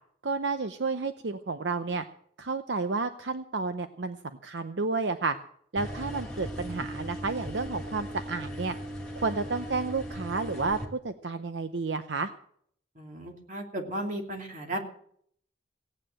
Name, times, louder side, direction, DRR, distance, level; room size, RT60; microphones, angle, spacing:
voice 1, 0.2-2.0 2.4-5.4 5.7-8.8 9.2-12.3, right 4 dB, 75° right, 9 dB, 0.8 m, -31 dB
sound 1, 5.8-10.9, equal, 5° left, 2.5 m, -38 dB
voice 2, 12.9-14.8, right 1 dB, 45° right, 2 dB, 2.7 m, -35 dB
17.0 x 9.1 x 7.6 m, 0.65 s
head